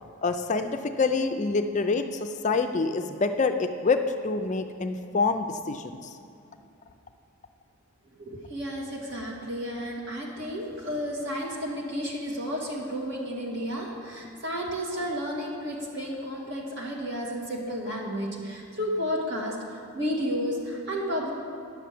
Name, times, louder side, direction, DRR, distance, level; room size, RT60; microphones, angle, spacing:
voice 1, 0.2-6.2, left 4 dB, 35° left, 7 dB, 0.4 m, -26 dB
voice 2, 8.2-21.3, equal, 50° right, -3 dB, 2.2 m, -32 dB
10.5 x 7.0 x 7.6 m, 2.6 s
head